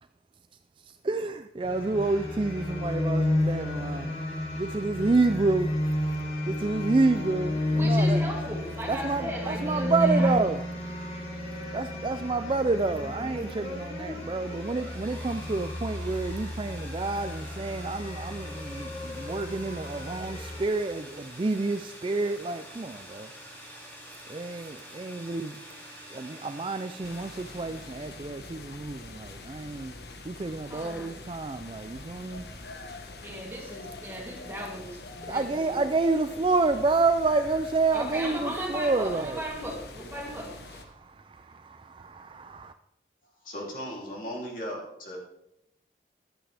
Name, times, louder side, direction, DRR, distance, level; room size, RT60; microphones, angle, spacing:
voice 1, 1.0-4.1 4.6-5.7 6.5-8.2 8.9-10.6 11.7-23.3 24.3-25.6 26.1-29.9 30.3-32.4 35.3-39.4 40.9-42.7, right 3 dB, 30° right, 9 dB, 0.4 m, -29 dB
sound 1, 1.6-20.7, left 1 dB, 35° left, 3.2 m, -31 dB
voice 2, 7.7-10.5 30.7-31.2 33.2-36.2 37.9-40.8, equal, 15° right, -3 dB, 2.9 m, -37 dB
sound 2, 14.2-28.6, equal, 10° left, 2.5 m, -47 dB
sound 3, 27.0-40.8, left 3 dB, 70° left, 1.3 m, -45 dB
voice 3, 43.4-45.2, equal, 50° left, -2 dB, 3.1 m, -37 dB
14.5 x 11.0 x 3.4 m, 0.82 s
head